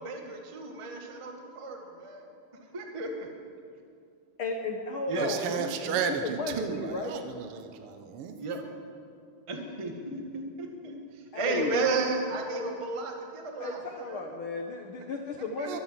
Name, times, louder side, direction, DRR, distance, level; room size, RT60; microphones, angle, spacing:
voice 1, 0.0-2.3 2.7-3.4 5.1-5.3 8.4-8.6 9.5-14.3 15.6-15.8, right 3 dB, 25° right, 2 dB, 0.7 m, -33 dB
voice 2, 4.4-7.2 11.3-11.8 13.6-15.8, left 3 dB, 70° left, 2 dB, 1.3 m, -34 dB
voice 3, 5.1-8.3 15.7-15.8, right 7 dB, 75° right, 6 dB, 1.3 m, -33 dB
23.0 x 8.2 x 7.5 m, 2.4 s
omnidirectional pair, 3.6 m